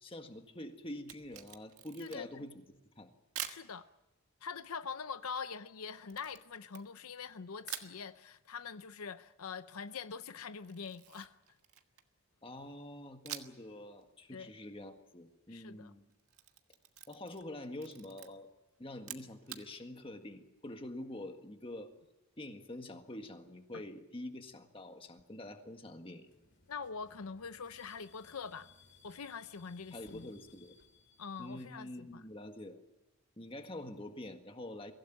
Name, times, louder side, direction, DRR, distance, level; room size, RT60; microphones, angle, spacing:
voice 1, 0.0-2.6 3.0-3.1 12.4-16.1 17.1-18.5 18.8-21.9 22.4-26.3 29.9-30.7 31.4-32.8 33.4-34.9, left 1 dB, 25° left, 1.7 m, -46 dB
Camera, 1.0-2.4 3.4-3.7 6.1-7.3 7.7-8.0 10.6-12.2 13.3-13.7 14.0-14.1 16.1-17.5 17.8-18.3 19.0-19.7, right 11 dB, 85° right, 1.6 m, -46 dB
voice 2, 2.0-2.4 3.4-3.8 4.4-11.4 14.3-14.5 15.5-15.9 23.7-23.8 26.7-28.7 29.0-30.3 31.2-32.2, left 5 dB, 85° left, 0.7 m, -44 dB
sound 1, 26.3-31.6, left 5 dB, 55° left, 2.9 m, -63 dB
23.5 x 16.5 x 9.2 m
head